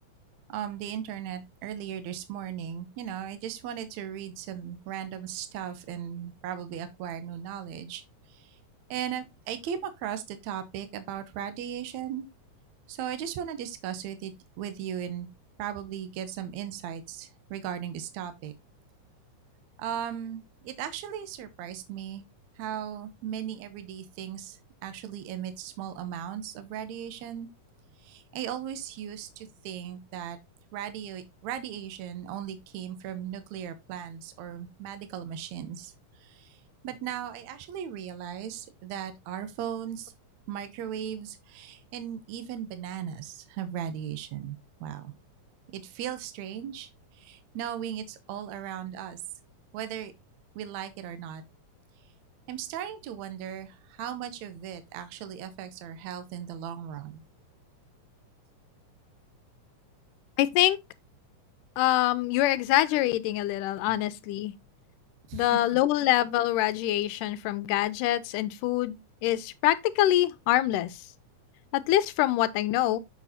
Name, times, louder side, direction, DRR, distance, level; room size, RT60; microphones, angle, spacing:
voice 1, 0.5-8.0 8.3-8.6 8.9-12.3 12.9-15.3 15.6-18.5 19.8-22.2 22.6-27.5 28.0-30.4 30.7-35.9 36.2-40.1 40.5-45.2 45.7-49.2 49.7-50.1 50.6-51.4 52.5-57.2 63.9-64.0 65.3-65.8, right 9 dB, 70° right, 2.0 m, -37 dB
voice 2, 60.4-60.8 61.8-64.5 65.3-69.0 69.2-70.9 71.7-73.0, left 14 dB, 85° left, 2.2 m, -25 dB
7.0 x 6.2 x 2.8 m
omnidirectional pair, 3.7 m